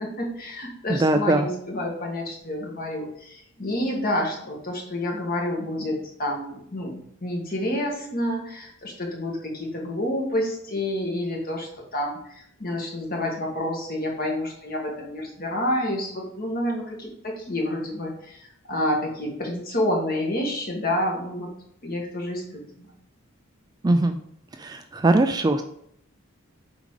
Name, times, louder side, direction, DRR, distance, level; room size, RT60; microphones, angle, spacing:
voice 1, 0.0-7.0 7.2-21.5 21.8-22.9, left 1 dB, 40° left, 0 dB, 1.7 m, -29 dB
voice 2, 1.0-1.5 23.8-24.2 24.6-25.6, right 2 dB, 20° right, 7 dB, 0.3 m, -20 dB
7.1 x 4.8 x 3.9 m, 0.70 s
head